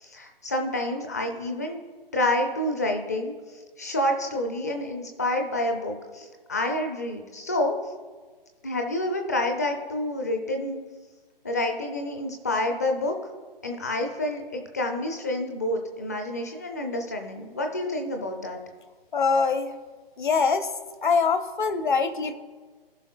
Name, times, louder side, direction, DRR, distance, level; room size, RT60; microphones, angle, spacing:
voice 1, 0.0-1.8 2.1-3.3 3.8-7.8 8.6-10.8 11.4-13.2 13.6-18.6, left 1 dB, 20° left, 3 dB, 0.4 m, -28 dB
voice 2, 19.1-19.7 20.2-20.7 21.0-22.3, left 5 dB, 55° left, 9 dB, 0.8 m, -23 dB
15.5 x 5.4 x 2.4 m, 1.4 s
figure-of-eight pair, 140°, 29 cm